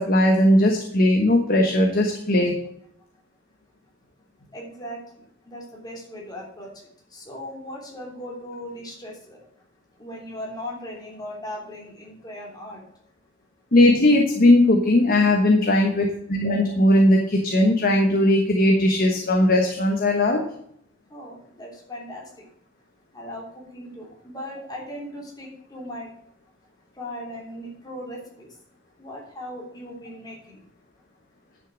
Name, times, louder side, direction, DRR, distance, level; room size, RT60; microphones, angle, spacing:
voice 1, 0.0-2.6 13.7-20.5, left 1 dB, 45° left, 2 dB, 1.2 m, -18 dB
voice 2, 4.5-6.7 7.1-9.4 10.0-12.8 21.1-22.2 23.1-26.1 27.0-28.5 29.0-30.6, left 1 dB, 20° left, -3 dB, 3.1 m, -38 dB
10.5 x 6.1 x 5.1 m, 0.69 s
head